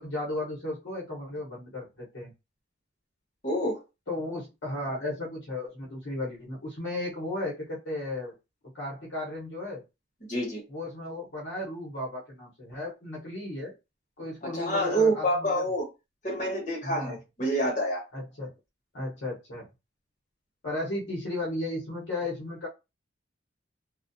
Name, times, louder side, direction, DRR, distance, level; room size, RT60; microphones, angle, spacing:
voice 1, 0.0-2.3 4.1-8.3 8.7-9.8 10.7-13.7 14.2-15.6 16.8-17.1 18.1-18.5 18.9-19.7 20.6-22.7, left 1 dB, 65° left, -3 dB, 1.0 m, -35 dB
voice 2, 3.4-3.8 10.3-10.6 14.4-15.9 16.2-18.0, right 1 dB, 40° left, -3 dB, 1.1 m, -27 dB
2.4 x 2.3 x 2.6 m, 0.26 s
head